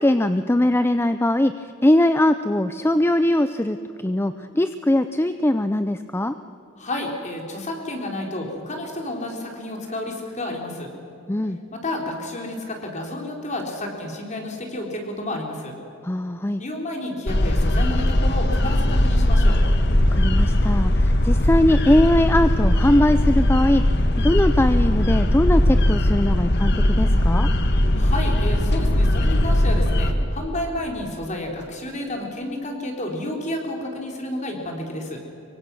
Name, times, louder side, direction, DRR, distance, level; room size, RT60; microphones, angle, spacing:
voice 1, 0.0-3.8 4.0-6.3 11.3-11.6 16.0-16.6 20.1-23.8 24.2-27.5, left 1 dB, 10° left, 10 dB, 0.5 m, -20 dB
voice 2, 6.8-10.9 11.7-15.7 16.6-19.6 27.9-35.2, left 1 dB, 35° left, 1 dB, 3.9 m, -30 dB
sound 1, 17.3-30.1, left 1 dB, 55° left, 1.6 m, -19 dB
25.0 x 23.5 x 6.2 m, 2.9 s
head